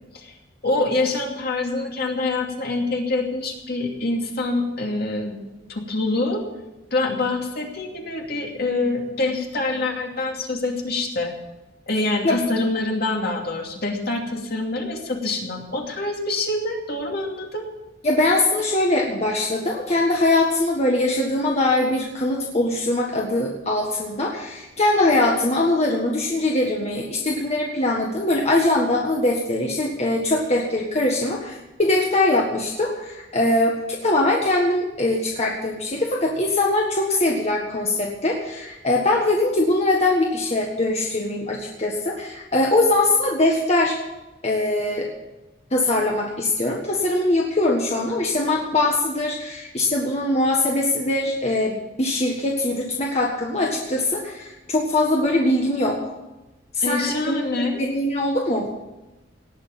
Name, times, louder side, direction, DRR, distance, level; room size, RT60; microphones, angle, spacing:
voice 1, 0.6-5.4 5.7-6.4 6.9-11.3 11.9-17.7 56.8-57.8, left 2 dB, 55° left, 1 dB, 2.6 m, -25 dB
voice 2, 18.0-44.0 44.4-45.1 45.7-56.0 56.7-58.7, left 2 dB, 35° left, -1 dB, 1.6 m, -22 dB
18.5 x 6.6 x 9.3 m, 1.0 s
head